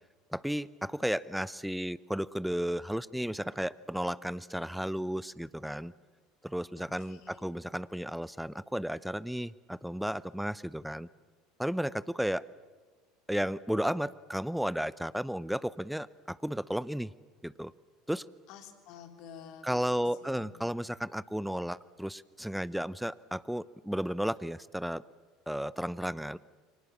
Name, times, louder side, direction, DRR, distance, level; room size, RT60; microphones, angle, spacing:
voice 1, 0.3-5.9 6.4-11.1 11.6-12.4 13.3-17.1 17.4-17.7 18.1-18.3 19.6-25.0 25.5-26.4, equal, ahead, 19 dB, 0.8 m, -33 dB
voice 2, 6.8-7.5 18.5-20.5, left 7 dB, 55° left, 6 dB, 3.3 m, -51 dB
29.0 x 24.5 x 7.3 m, 1.4 s
figure-of-eight pair, 70°, 0 cm